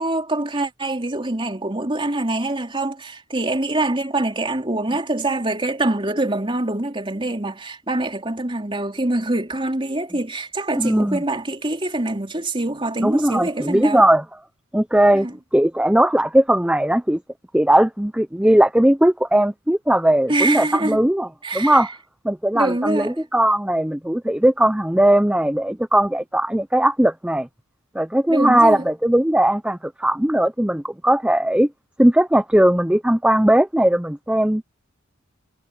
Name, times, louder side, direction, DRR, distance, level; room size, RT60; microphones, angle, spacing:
voice 1, 0.0-14.0 15.2-15.3 20.3-21.0 21.4-21.9 22.5-23.1 28.3-28.8, right 2 dB, 25° right, 3.5 m, -24 dB
voice 2, 10.7-11.2 13.0-14.2 14.7-15.3 15.5-17.2 17.5-21.3 21.5-21.9 22.2-27.5 27.9-31.7 32.0-34.6, right 1 dB, 5° right, 0.7 m, -18 dB
head